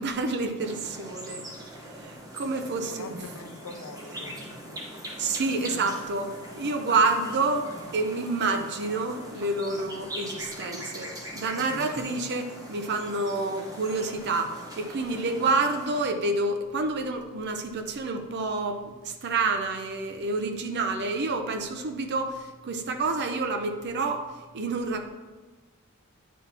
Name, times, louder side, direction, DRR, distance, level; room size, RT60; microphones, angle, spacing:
voice 1, 0.0-1.5 1.8-3.3 4.3-4.4 5.2-25.1, right 3 dB, 50° right, 6 dB, 0.6 m, -28 dB
sound 1, 0.6-16.0, equal, 15° right, 1.0 m, -42 dB
voice 2, 2.9-4.4 4.6-4.9 11.5-11.8, left 3 dB, 75° left, 7 dB, 0.5 m, -44 dB
9.2 x 4.0 x 2.8 m, 1.3 s
head